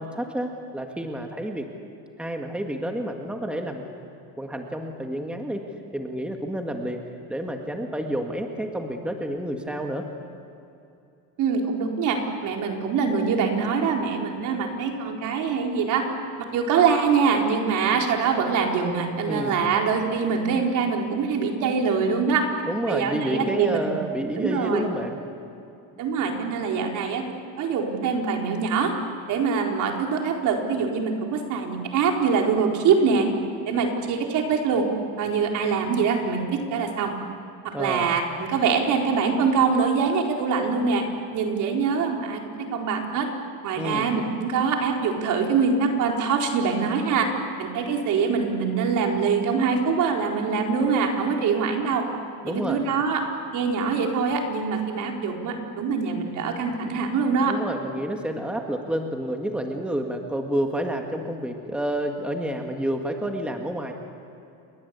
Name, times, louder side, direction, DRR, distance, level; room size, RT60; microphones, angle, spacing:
voice 1, 0.0-1.7 2.2-3.9 4.4-5.7 5.9-7.0 7.3-10.1 19.3-19.6 22.7-25.2 37.7-38.1 43.8-44.1 52.4-52.8 57.4-63.9, right 1 dB, 5° right, 3 dB, 1.9 m, -29 dB
voice 2, 11.4-16.0 16.5-22.4 22.9-24.0 24.3-24.8 26.0-27.2 27.6-28.9 29.3-33.3 33.7-34.8 35.2-37.1 37.8-41.0 41.3-43.3 43.6-47.3 47.6-52.0 52.4-53.2 53.5-57.5, right 5 dB, 60° right, 1 dB, 4.3 m, -24 dB
29.5 x 22.5 x 8.4 m, 2.7 s
cardioid pair, 155°, 34 cm